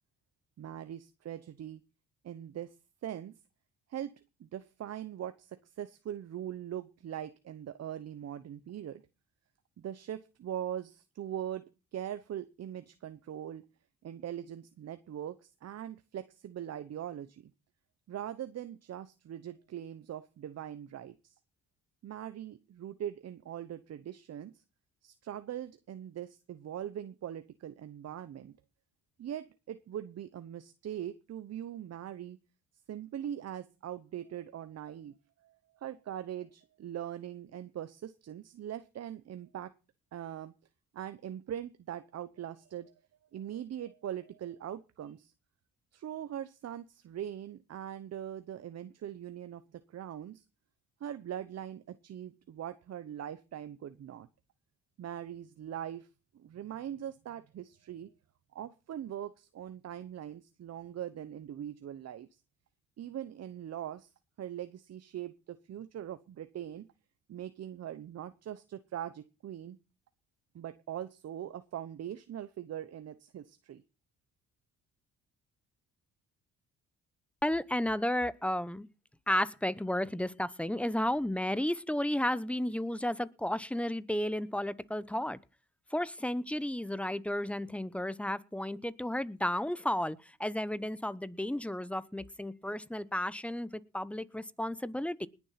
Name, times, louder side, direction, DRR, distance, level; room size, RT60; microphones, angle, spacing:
voice 1, 0.6-1.8 2.2-2.8 3.0-3.3 3.9-9.0 9.8-11.6 11.9-13.6 14.0-17.5 18.1-21.4 22.0-24.6 25.0-28.5 29.2-32.4 32.9-39.7 40.1-40.5 40.9-42.9 43.3-45.3 45.9-50.4 51.0-54.3 55.0-56.1 56.3-58.1 58.5-62.3 63.0-64.1 64.4-66.9 67.3-69.8 70.5-73.8, right 10 dB, 55° right, 1.0 m, -41 dB
voice 2, 77.4-78.9 79.3-85.4 85.9-95.3, left 1 dB, 5° left, 0.8 m, -33 dB
20.0 x 7.4 x 5.8 m
cardioid pair, 90°, 30 cm